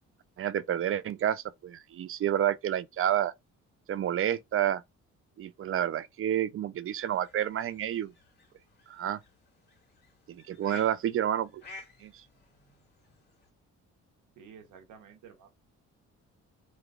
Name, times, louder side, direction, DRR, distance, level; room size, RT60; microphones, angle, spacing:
voice 1, 0.4-3.3 3.9-4.8 5.4-8.1 8.9-9.2 10.3-11.5 12.0-12.1, right 10 dB, 45° right, 0.4 m, -29 dB
sound 1, 6.9-13.5, left 2 dB, 35° left, 1.6 m, -54 dB
voice 2, 14.3-15.6, right 7 dB, 85° right, 1.0 m, -52 dB
3.1 x 2.3 x 3.5 m
cardioid pair, 90°, 30 cm